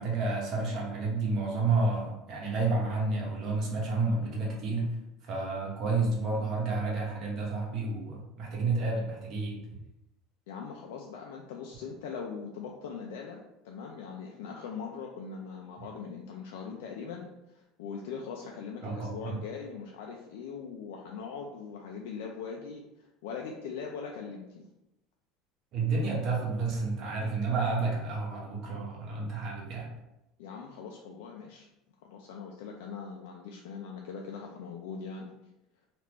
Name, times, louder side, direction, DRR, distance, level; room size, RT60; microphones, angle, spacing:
voice 1, 0.0-5.0 5.2-9.6 18.8-19.4 25.7-29.9, right 3 dB, 40° right, -2 dB, 0.9 m, -30 dB
voice 2, 10.5-24.7 30.4-31.7 32.0-35.3, left 5 dB, 90° left, 0 dB, 0.4 m, -41 dB
3.3 x 2.5 x 2.9 m, 0.92 s
cardioid pair, 150°, 0 cm